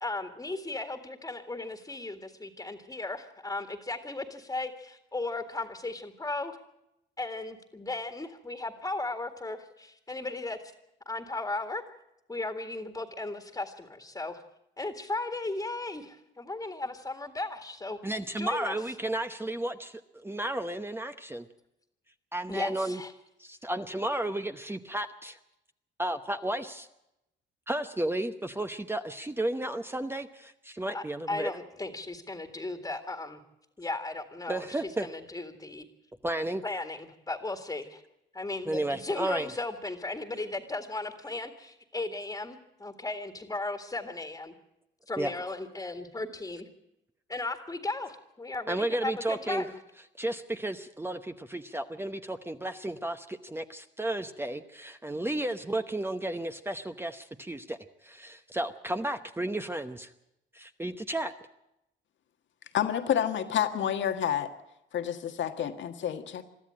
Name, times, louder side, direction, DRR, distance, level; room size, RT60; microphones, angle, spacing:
voice 1, 0.0-6.6 7.2-10.6 11.1-11.8 12.3-14.4 14.8-18.0 18.4-18.7 22.5-23.1 30.9-33.4 33.8-35.9 36.6-38.0 38.3-44.5 45.1-46.7 47.3-49.7, left 2 dB, 15° left, 5 dB, 1.9 m, -36 dB
voice 2, 18.0-21.5 22.3-23.0 23.4-25.4 26.0-26.9 27.7-31.5 34.5-35.1 36.2-36.6 38.7-39.5 45.2-45.3 48.7-49.6 50.2-60.1 60.5-61.3, right 1 dB, 10° right, 7 dB, 0.9 m, -33 dB
voice 3, 62.7-64.5 64.9-66.4, left 9 dB, 70° left, 7 dB, 1.7 m, -29 dB
22.5 x 13.5 x 8.8 m, 0.87 s
cardioid pair, 90°, 20 cm